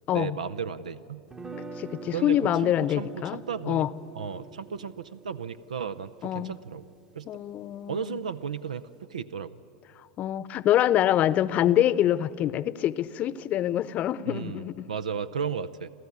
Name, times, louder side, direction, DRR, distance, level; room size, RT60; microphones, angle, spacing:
voice 1, 0.1-1.2 2.1-3.8 4.2-6.8 7.1-7.3 7.9-9.6 14.3-15.9, right 7 dB, 80° right, 15 dB, 0.6 m, -34 dB
sound 1, 1.3-7.3, right 3 dB, 20° right, 1.1 m, -45 dB
voice 2, 1.8-3.4 3.6-3.9 6.2-6.5 7.3-8.2 10.2-14.9, left 12 dB, 40° left, 17 dB, 0.8 m, -25 dB
29.5 x 13.0 x 9.5 m, 2.7 s
hypercardioid pair, 90°, 4 cm